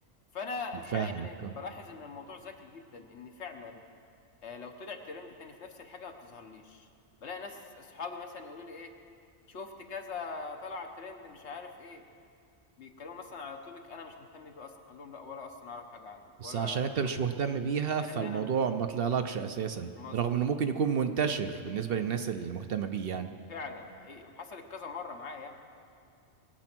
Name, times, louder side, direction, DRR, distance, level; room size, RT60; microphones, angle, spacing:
voice 1, 0.3-3.8 4.4-6.9 7.2-8.9 9.5-12.0 12.8-17.0 18.1-18.5 20.0-20.6 23.5-25.6, left 4 dB, 65° left, 4 dB, 1.4 m, -43 dB
voice 2, 0.9-1.5 16.4-23.3, right 7 dB, 60° right, 8 dB, 0.8 m, -30 dB
21.0 x 8.8 x 6.0 m, 2.4 s
omnidirectional pair, 1.2 m